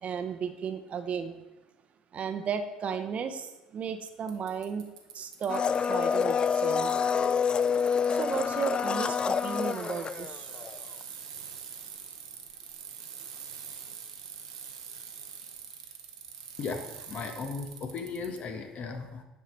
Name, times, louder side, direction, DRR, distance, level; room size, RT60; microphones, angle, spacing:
voice 1, 0.0-1.4 2.1-4.8 5.1-6.9 8.1-10.5, right 6 dB, 45° right, 7 dB, 0.8 m, -34 dB
Bicycle, 4.3-18.4, right 7 dB, 85° right, 0.9 m, -45 dB
Domestic sounds home sounds, 5.5-10.8 11.0-11.1, left 6 dB, 30° left, 0.3 m, -27 dB
voice 2, 16.6-19.2, left 4 dB, 50° left, 5 dB, 1.3 m, -36 dB
10.5 x 5.7 x 3.3 m, 1.0 s
hypercardioid pair, 65°, 3 cm